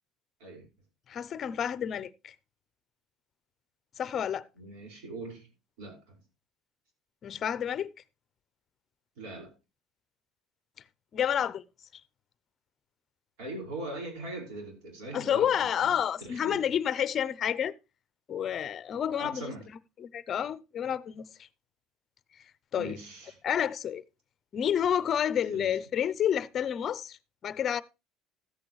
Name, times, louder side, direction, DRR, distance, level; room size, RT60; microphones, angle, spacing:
voice 1, 1.1-2.3 4.0-4.5 7.2-7.9 11.1-11.6 15.1-17.7 18.3-19.5 20.0-21.3 22.7-23.0 23.4-24.0 24.5-27.2 27.4-27.8, left 9 dB, 35° left, 0.5 m, -29 dB
voice 2, 4.6-5.5 5.8-6.2 9.2-9.5 13.4-16.7 19.1-19.7 22.8-23.4 25.5-25.7, right 2 dB, 85° right, 5.3 m, -41 dB
13.5 x 8.6 x 3.1 m
cardioid pair, 150°, 0 cm